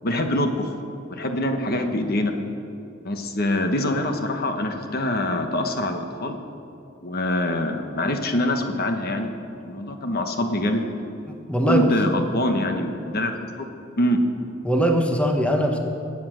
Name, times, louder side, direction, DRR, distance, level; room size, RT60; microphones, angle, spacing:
voice 1, 0.0-0.7 1.1-2.3 3.0-6.4 7.0-9.3 9.6-10.8 11.7-13.3 13.6-13.7 13.9-14.2, left 1 dB, 50° left, 5 dB, 1.1 m, -24 dB
voice 2, 11.3-11.9 14.6-15.8, equal, 5° left, 3 dB, 1.1 m, -21 dB
21.0 x 8.7 x 6.3 m, 2.7 s
head